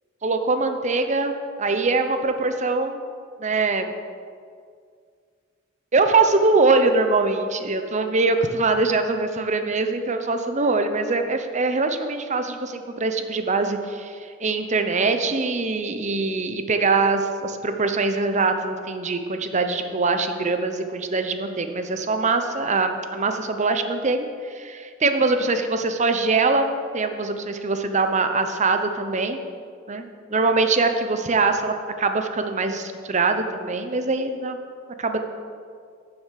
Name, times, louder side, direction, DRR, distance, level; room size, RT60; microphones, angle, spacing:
voice 1, 0.2-3.0 3.4-3.9 5.9-26.7 26.9-29.4 29.9-34.6 35.0-35.2, right 3 dB, 35° right, 7 dB, 0.8 m, -23 dB
10.0 x 7.1 x 6.5 m, 2.1 s
head